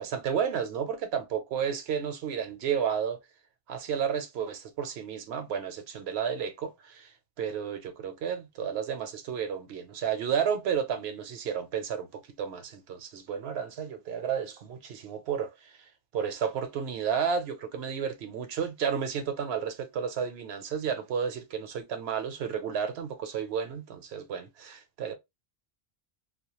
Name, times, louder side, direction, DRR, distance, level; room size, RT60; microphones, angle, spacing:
voice 1, 0.0-3.2 3.7-7.1 7.4-15.5 16.1-25.1, right 7 dB, 75° right, 0.8 m, -32 dB
2.2 x 2.0 x 2.9 m
omnidirectional pair, 1.1 m